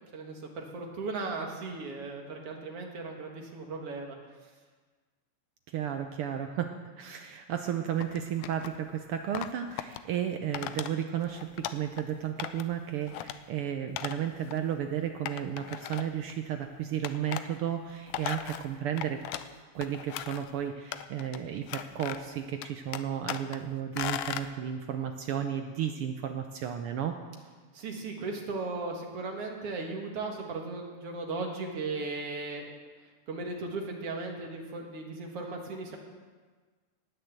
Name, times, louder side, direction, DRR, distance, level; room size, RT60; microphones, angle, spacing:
voice 1, 0.0-4.2 27.7-32.7 33.3-36.0, right 3 dB, 55° right, 1 dB, 2.6 m, -37 dB
voice 2, 5.7-19.2 19.7-27.2, right 9 dB, 75° right, 5 dB, 1.3 m, -33 dB
sound 1, 8.0-8.8 9.3-10.0 10.5-10.9 11.2-12.0 12.4-12.7 13.1-13.4 14.0-14.2 14.5-14.6 15.3-16.3 17.0-17.5 17.9-19.5 19.8-20.5 20.9-21.4 21.7-22.3 22.6-23.6 24.0-24.5, left 12 dB, 90° left, 2.0 m, -37 dB
19.0 x 6.8 x 8.0 m, 1.4 s
omnidirectional pair, 3.3 m